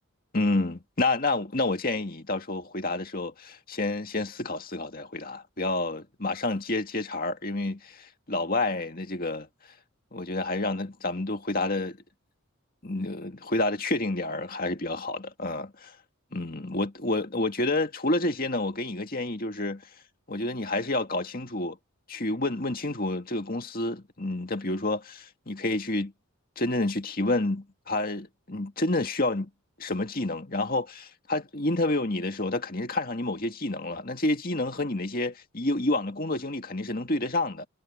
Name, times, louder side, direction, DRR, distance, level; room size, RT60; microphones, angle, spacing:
voice 1, 0.3-9.5 10.1-12.0 12.8-15.9 16.3-19.8 20.3-21.8 22.1-26.1 26.6-29.5 29.8-37.7, left 2 dB, 40° left, 2.1 m, -29 dB
head